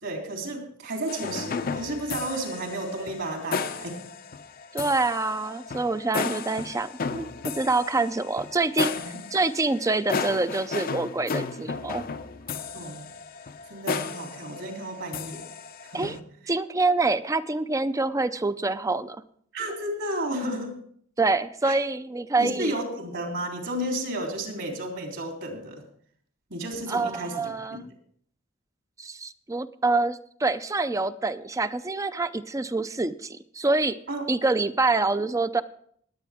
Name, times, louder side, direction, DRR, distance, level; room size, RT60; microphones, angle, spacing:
voice 1, 0.0-4.1 12.7-13.1 13.7-15.4 15.8-16.2 19.5-20.8 21.7-21.8 22.4-25.8 26.5-27.8 34.1-34.2, right 1 dB, 65° right, 1 dB, 3.4 m, -32 dB
sound 1, 1.1-16.2, left 5 dB, 45° left, 0.6 m, -34 dB
voice 2, 4.7-7.3 7.6-8.9 9.3-12.0 15.9-16.2 16.5-19.2 21.2-22.8 26.9-27.9 29.0-34.0 34.3-35.6, right 3 dB, 15° right, 13 dB, 0.5 m, -26 dB
20.0 x 8.5 x 3.6 m, 0.62 s
head